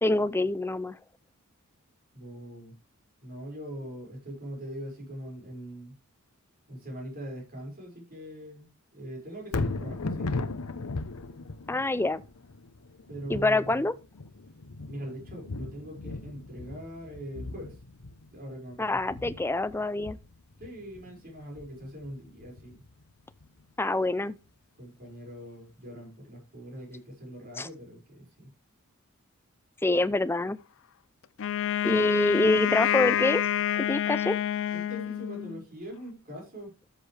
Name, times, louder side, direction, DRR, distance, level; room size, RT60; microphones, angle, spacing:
voice 1, 0.0-1.0 11.7-12.2 13.3-13.9 18.8-20.2 23.8-24.4 27.6-27.7 29.8-30.6 31.8-33.4 33.8-34.4, left 2 dB, 10° left, 0.5 m, -26 dB
voice 2, 2.1-2.7 3.2-5.9 6.7-10.4 13.1-13.8 14.9-17.8 18.3-19.0 20.6-22.8 24.8-28.5 34.7-36.7, equal, 45° right, 5.7 m, -42 dB
Thunder, 9.4-23.6 24.1-24.2, left 3 dB, 85° left, 0.9 m, -38 dB
Wind instrument woodwind instrument, 31.4-35.6, left 11 dB, 60° left, 0.5 m, -28 dB
13.0 x 7.7 x 3.3 m
head